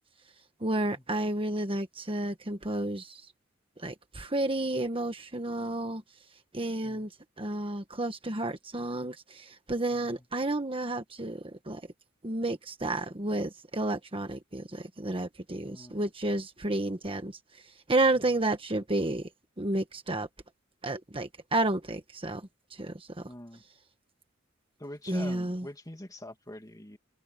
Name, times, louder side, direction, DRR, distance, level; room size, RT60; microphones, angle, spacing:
voice 1, 0.6-3.2 3.8-6.0 6.5-7.1 7.4-11.8 12.2-19.3 19.6-20.3 20.8-23.3 25.1-25.7, right 2 dB, 25° right, 1.4 m, -31 dB
voice 2, 9.9-10.2 15.6-16.0 18.2-18.3 23.2-23.6 24.8-27.0, left 1 dB, 20° left, 2.5 m, -45 dB
open air
head